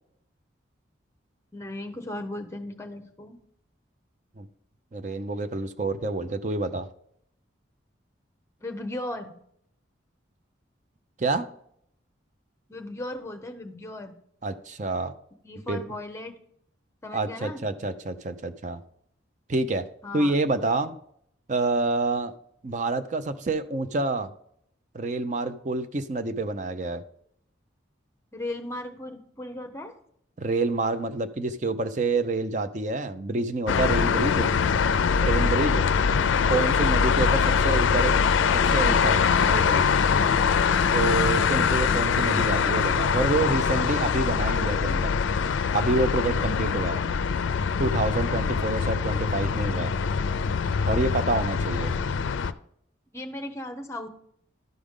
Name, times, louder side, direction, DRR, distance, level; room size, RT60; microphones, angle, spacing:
voice 1, 1.5-3.4 8.6-9.3 12.7-14.1 15.4-16.4 17.0-17.6 20.0-20.3 28.3-29.9 53.1-54.1, left 1 dB, 15° left, 6 dB, 0.7 m, -36 dB
voice 2, 4.9-6.9 11.2-11.5 14.4-15.1 15.7-15.8 17.1-18.8 19.5-19.8 20.1-21.0 21.5-22.3 22.6-24.3 24.9-27.0 30.4-34.5 35.2-35.9 36.5-38.2 38.5-39.9 40.9-45.1 45.7-47.0 47.8-49.9 50.9-51.9, right 2 dB, 40° right, 10 dB, 0.5 m, -27 dB
sound 1, 33.7-52.5, left 6 dB, 80° left, 0.4 m, -23 dB
12.5 x 5.0 x 3.6 m, 0.69 s
head